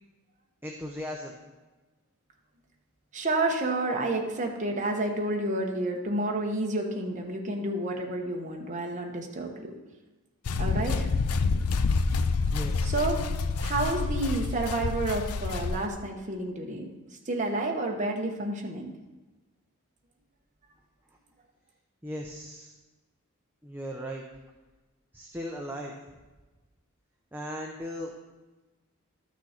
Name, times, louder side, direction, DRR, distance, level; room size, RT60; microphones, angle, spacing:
voice 1, 0.6-1.3 12.5-12.9 22.0-22.7 23.6-24.2 25.1-25.9 27.3-28.1, equal, 10° right, 0 dB, 0.6 m, -37 dB
voice 2, 3.1-9.8 10.6-11.1 12.9-13.2 13.6-16.8 17.3-18.9, right 2 dB, 35° right, 1 dB, 1.1 m, -30 dB
sound 1, 10.5-15.9, left 4 dB, 80° left, 0.5 m, -28 dB
12.5 x 6.2 x 4.3 m, 1.2 s
head